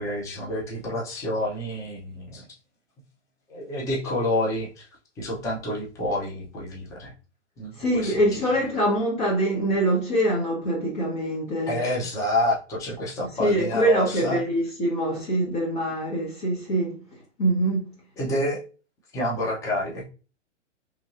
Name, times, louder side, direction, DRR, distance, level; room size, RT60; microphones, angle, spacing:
voice 1, 0.0-2.5 3.5-4.8 5.2-7.1 7.6-8.2 11.7-14.4 18.2-18.6 19.1-20.0, left 1 dB, 10° left, 0.5 m, -28 dB
voice 2, 7.8-11.8 13.4-17.0 17.4-17.9, right 1 dB, 40° left, 1.1 m, -24 dB
3.1 x 2.6 x 2.5 m
hypercardioid pair, 125°, 37 cm